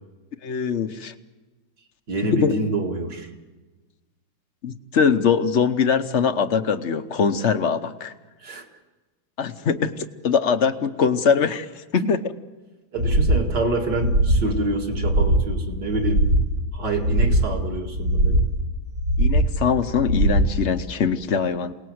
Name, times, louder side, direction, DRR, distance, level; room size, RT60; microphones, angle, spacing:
voice 1, 0.4-1.1 2.3-2.5 4.6-8.1 9.4-12.3 19.2-21.7, left 6 dB, 50° left, 10 dB, 0.9 m, -22 dB
voice 2, 2.1-3.3 8.4-8.7 12.9-16.2 16.7-18.4, right 2 dB, 55° right, 2 dB, 2.9 m, -27 dB
sound 1, 13.0-13.5 13.9-14.5 14.9-15.5 15.9-16.5 16.9-17.5 17.9-18.5 18.9-19.5 19.9-20.5, right 1 dB, 75° right, 5.1 m, -20 dB
28.0 x 19.0 x 7.9 m, 1.2 s
omnidirectional pair, 2.2 m